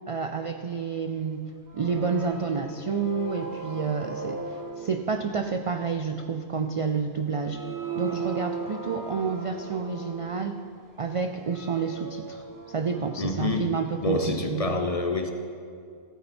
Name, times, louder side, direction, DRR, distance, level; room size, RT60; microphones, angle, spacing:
voice 1, 0.1-7.6 8.0-10.6 11.0-14.7, right 5 dB, 55° right, 6 dB, 0.3 m, -29 dB
sound 1, 1.7-5.5 6.9-7.0 7.3-10.8 11.2-13.5, right 4 dB, 20° right, 0.7 m, -38 dB
voice 2, 13.2-13.7 14.0-15.3, left 2 dB, 40° left, 6 dB, 0.7 m, -27 dB
15.5 x 8.7 x 4.3 m, 2.3 s
omnidirectional pair, 1.2 m